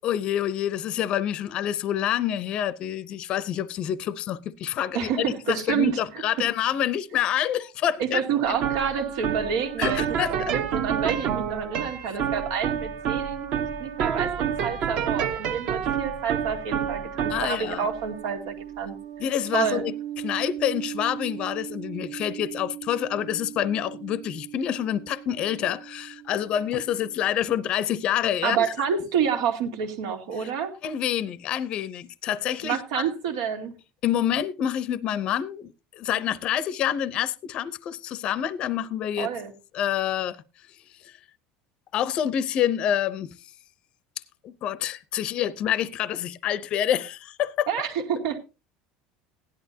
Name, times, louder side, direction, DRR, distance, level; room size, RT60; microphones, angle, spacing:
voice 1, 0.0-8.2 9.8-10.5 17.3-17.9 19.2-20.0 20.2-28.7 30.4-30.5 30.8-32.8 34.0-39.3 39.7-40.4 41.9-43.4 44.4-47.7, left 10 dB, 35° left, 0.6 m, -27 dB
voice 2, 4.9-6.0 8.0-19.0 19.5-19.8 28.4-30.7 32.6-33.7 39.2-39.5 47.7-48.4, right 7 dB, 90° right, 2.3 m, -28 dB
sound 1, 8.4-25.6, right 8 dB, 45° right, 1.1 m, -30 dB
16.5 x 11.0 x 2.8 m
cardioid pair, 170°, 3 cm